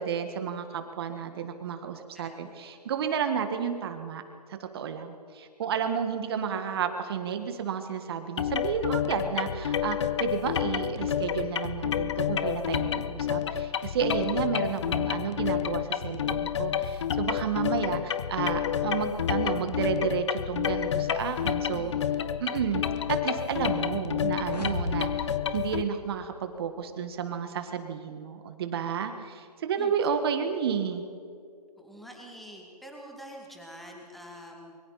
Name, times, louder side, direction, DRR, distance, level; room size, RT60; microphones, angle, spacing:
voice 1, 0.0-4.2 4.5-21.9 22.4-22.8 23.1-31.0, right 7 dB, 35° right, 7 dB, 1.7 m, -31 dB
voice 2, 1.9-2.5 21.7-22.4 29.8-29.9 31.8-34.8, equal, ahead, 0 dB, 2.4 m, -47 dB
sound 1, 8.4-25.8, left 9 dB, 45° left, 0.8 m, -29 dB
sound 2, 24.4-26.6, left 3 dB, 80° left, 2.6 m, -36 dB
26.0 x 23.5 x 4.2 m, 2.4 s
hypercardioid pair, 150°, 20 cm